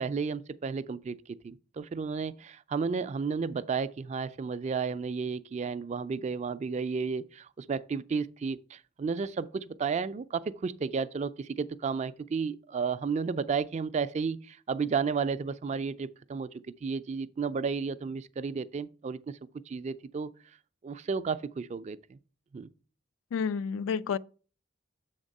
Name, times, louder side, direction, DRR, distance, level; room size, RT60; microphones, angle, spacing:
voice 1, 0.0-16.5 16.8-19.4 19.7-20.3 20.8-22.2 22.5-22.7, right 5 dB, 35° right, 0.3 m, -32 dB
voice 2, 23.3-24.2, left 6 dB, 85° left, 0.3 m, -30 dB
7.2 x 3.6 x 5.2 m
head